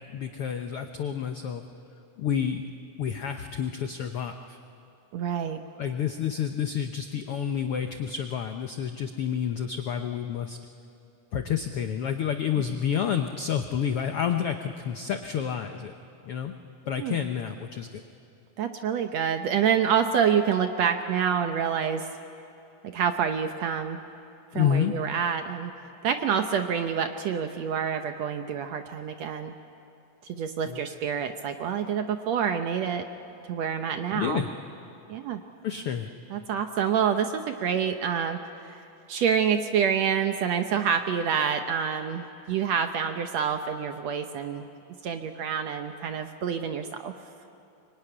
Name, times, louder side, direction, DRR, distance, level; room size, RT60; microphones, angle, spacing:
voice 1, 0.1-1.6 2.2-2.6 3.0-4.6 5.8-10.6 11.3-15.9 16.2-16.5 16.9-18.0 24.5-24.9 30.7-30.8 34.1-34.5 35.6-36.1, left 8 dB, 85° left, 6 dB, 1.2 m, -29 dB
voice 2, 5.1-5.6 17.0-17.2 18.6-22.0 22.8-24.0 24.5-25.7 26.0-29.5 30.2-33.1 33.5-34.4 35.1-35.4 36.3-38.8 39.1-44.7 45.0-47.1, right 7 dB, 70° right, 7 dB, 1.7 m, -27 dB
24.5 x 23.5 x 9.9 m, 2.7 s
omnidirectional pair, 3.9 m